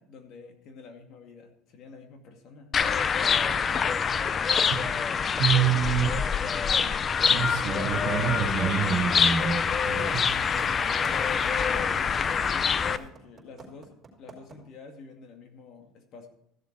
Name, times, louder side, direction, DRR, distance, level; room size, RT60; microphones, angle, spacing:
voice 1, 0.0-2.8 9.8-10.2 10.6-13.9 14.2-16.3, left 4 dB, 55° left, 4 dB, 2.2 m, -47 dB
sound 1, 2.7-13.0, left 6 dB, 35° left, 0.5 m, -25 dB
sound 2, 3.5-14.5, right 4 dB, 30° right, 3.8 m, -45 dB
voice 2, 5.4-6.2 7.3-9.6 9.9-10.2, right 8 dB, 60° right, 4 dB, 2.2 m, -26 dB
sound 3, 7.0-13.1, equal, 15° left, 2.1 m, -51 dB
14.5 x 7.1 x 4.6 m, 0.77 s
supercardioid pair, 105°, 0 cm